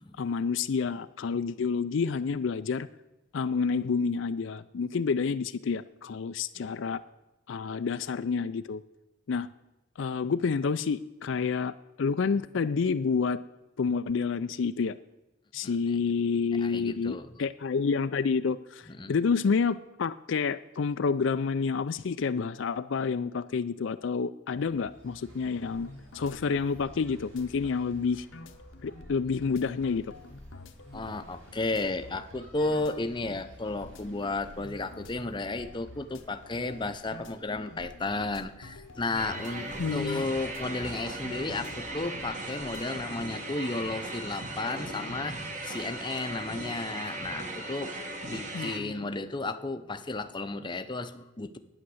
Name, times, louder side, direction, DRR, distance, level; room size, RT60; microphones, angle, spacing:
voice 1, 0.2-2.9 3.3-7.0 7.5-8.8 9.3-9.5 10.0-13.4 13.8-15.0 15.5-25.9 26.1-28.3 28.8-30.1 39.8-40.2 48.5-49.1, left 5 dB, 65° left, 11 dB, 0.4 m, -29 dB
voice 2, 16.6-17.3 18.9-19.1 30.9-48.0 48.3-51.6, left 2 dB, 25° left, 9 dB, 0.7 m, -33 dB
sound 1, 24.5-41.9, equal, 70° right, 3.4 m, -54 dB
sound 2, 25.7-42.9, left 2 dB, 85° left, 1.0 m, -50 dB
sound 3, 39.1-48.8, right 2 dB, 40° right, 1.6 m, -38 dB
11.5 x 9.7 x 7.8 m, 1.0 s
head